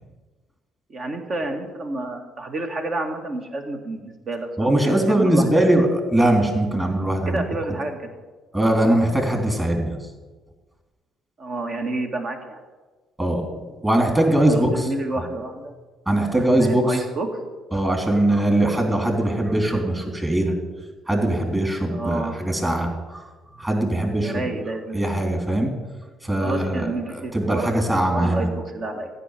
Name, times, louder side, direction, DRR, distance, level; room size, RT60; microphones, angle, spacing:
voice 1, 0.9-5.5 7.3-8.1 11.4-12.6 14.5-15.7 16.4-17.3 21.9-22.4 24.2-25.1 26.4-27.7 28.1-29.1, right 2 dB, 45° right, 5 dB, 2.1 m, -29 dB
voice 2, 4.6-7.4 7.7-7.8 8.5-10.0 13.2-14.9 16.1-17.0 17.7-20.6 21.1-23.2 23.5-24.4 24.9-25.7 26.2-28.5, right 1 dB, 15° right, 3 dB, 3.6 m, -21 dB
15.0 x 5.7 x 9.2 m, 1.3 s
figure-of-eight pair, 50°, 0 cm